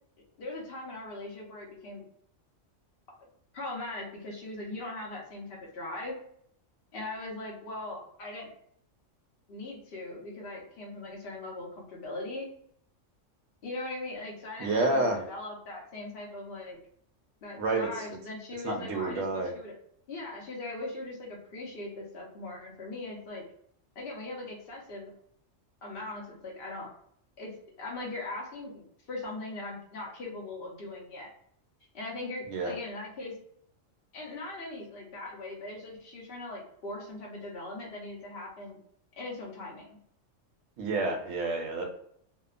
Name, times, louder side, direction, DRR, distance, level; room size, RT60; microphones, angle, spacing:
voice 1, 0.4-2.1 3.5-6.2 6.9-8.5 9.5-12.5 13.6-15.0 15.3-16.8 17.4-19.7 20.1-23.4 24.0-25.1 25.8-26.9 27.4-28.8 29.1-31.3 31.9-33.3 34.1-38.8 39.2-40.0, left 2 dB, 55° left, -3 dB, 0.8 m, -40 dB
voice 2, 14.6-15.2 17.6-17.9 18.6-19.5 32.5-32.8 40.8-41.8, right 2 dB, 85° right, 1 dB, 1.0 m, -29 dB
2.8 x 2.1 x 2.3 m, 0.68 s
omnidirectional pair, 1.3 m